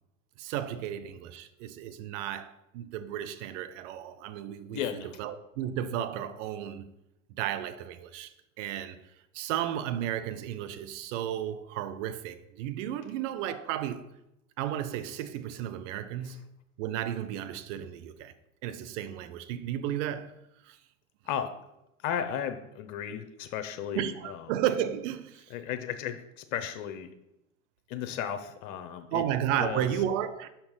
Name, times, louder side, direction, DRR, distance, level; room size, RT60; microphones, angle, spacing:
voice 1, 0.4-4.8 5.2-6.9 7.4-9.0 9.3-14.1 14.6-16.4 16.8-18.3 18.6-20.3 20.6-20.8 23.9-25.5 29.1-30.5, right 11 dB, 65° right, 0.7 m, -33 dB
voice 2, 4.7-5.2 21.2-21.6 22.0-24.5 25.5-27.1 27.9-29.3 29.6-29.9, left 9 dB, 60° left, 0.8 m, -35 dB
5.5 x 4.4 x 5.5 m
hypercardioid pair, 80°, 41 cm